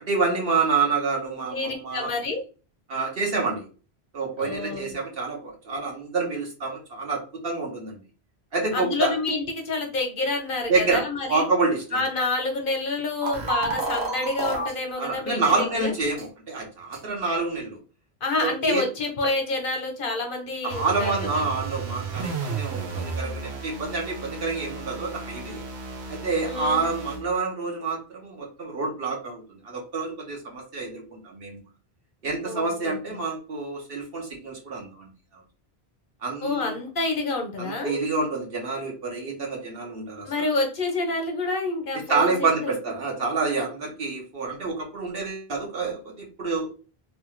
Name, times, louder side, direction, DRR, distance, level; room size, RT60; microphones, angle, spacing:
voice 1, 0.1-2.1 2.9-3.6 4.1-8.0 8.5-9.1 10.7-12.0 15.0-17.8 18.4-18.8 20.6-25.6 26.1-31.6 32.2-35.4 36.2-36.7 37.6-40.4 42.1-46.7, right 3 dB, 65° right, 0 dB, 1.2 m, -28 dB
voice 2, 1.5-2.4 4.4-4.9 8.7-11.5 11.9-15.9 18.2-21.5 26.5-26.9 32.4-33.0 36.4-38.0 40.2-42.7, left 3 dB, 55° left, 3 dB, 0.9 m, -28 dB
sound 1, 13.2-14.7 15.4-15.5 16.2-16.3 16.9-17.0, right 2 dB, 50° right, 0.9 m, -28 dB
sound 2, 20.7-27.3, right 4 dB, 90° right, 0.9 m, -34 dB
3.1 x 2.3 x 3.0 m, 0.36 s
omnidirectional pair, 1.1 m